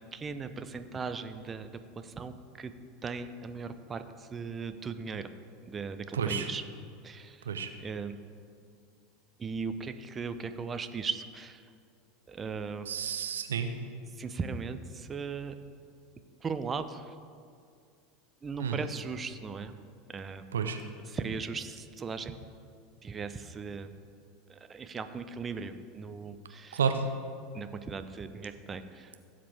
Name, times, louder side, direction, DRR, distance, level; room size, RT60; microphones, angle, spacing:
voice 1, 0.1-2.7 3.0-5.3 5.6-6.6 7.0-7.5 7.8-8.1 9.4-11.7 12.3-12.9 14.2-15.5 16.4-17.1 18.4-19.7 20.1-20.4 21.0-22.4 23.0-23.9 24.5-26.8 27.5-29.1, right 5 dB, 25° right, 10 dB, 0.7 m, -38 dB
voice 2, 6.1-6.5 7.5-7.7 12.9-13.7 18.6-18.8 20.5-20.8 26.7-27.0, right 7 dB, 75° right, 7 dB, 0.8 m, -30 dB
16.0 x 7.6 x 3.5 m, 2.3 s
figure-of-eight pair, 80°, 0 cm